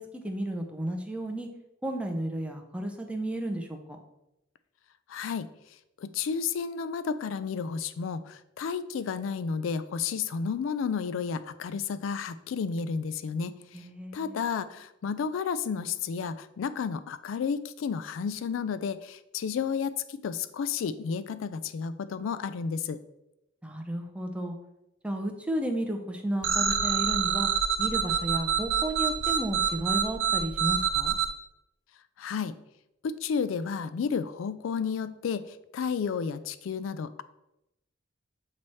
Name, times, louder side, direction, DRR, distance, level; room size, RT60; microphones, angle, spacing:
voice 1, 0.0-1.5 1.8-4.0 13.7-14.4 23.6-24.5 25.0-27.5 27.8-31.2, right 1 dB, 5° right, 3 dB, 0.6 m, -33 dB
voice 2, 5.1-5.5 6.0-13.9 14.1-23.0 32.2-32.5 33.0-37.2, left 6 dB, 80° left, 13 dB, 0.3 m, -32 dB
sound 1, 26.4-31.3, right 7 dB, 70° right, 0.6 m, -26 dB
7.6 x 3.1 x 4.2 m, 0.87 s
head